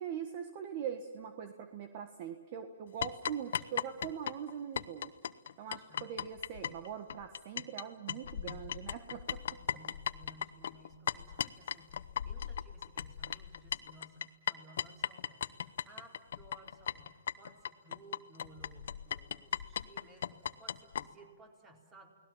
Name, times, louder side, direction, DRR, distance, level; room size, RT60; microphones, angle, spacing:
voice 1, 0.0-5.1 5.6-9.6, right 8 dB, 40° right, 8 dB, 1.4 m, -42 dB
sound 1, 3.0-7.8 8.1-21.1, left 8 dB, 65° left, 0.8 m, -37 dB
voice 2, 9.3-15.5 15.8-22.2, right 2 dB, 15° right, 3 dB, 4.0 m, -58 dB
29.5 x 19.0 x 7.3 m, 1.5 s
hypercardioid pair, 145°, 0 cm